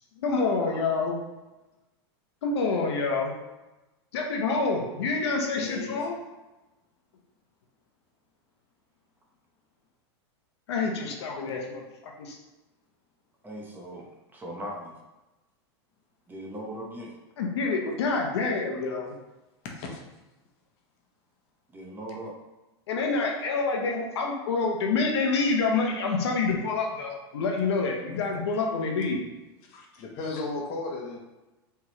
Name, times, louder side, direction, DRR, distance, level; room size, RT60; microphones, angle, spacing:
voice 1, 0.2-1.1 2.4-3.3 4.1-6.2 10.7-12.4 17.4-19.2 22.9-29.2, left 4 dB, 75° left, 1 dB, 0.9 m, -27 dB
voice 2, 5.5-6.0 19.7-20.0 28.1-28.2 29.6-31.2, left 3 dB, 45° left, 1 dB, 1.0 m, -35 dB
voice 3, 13.4-14.9 16.3-17.1 21.7-22.3, right 1 dB, 15° right, -2 dB, 0.9 m, -39 dB
4.8 x 3.5 x 3.0 m, 1.1 s
hypercardioid pair, 120°, 14 cm